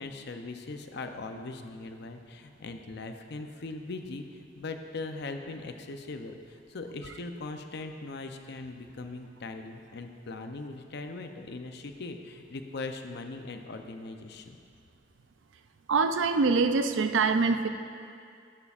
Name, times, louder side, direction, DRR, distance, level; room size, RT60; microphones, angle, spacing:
voice 1, 0.0-14.6, left 3 dB, 60° left, 6 dB, 0.6 m, -40 dB
voice 2, 15.9-17.7, right 4 dB, 85° right, 8 dB, 0.5 m, -24 dB
11.0 x 11.0 x 2.5 m, 2.3 s
head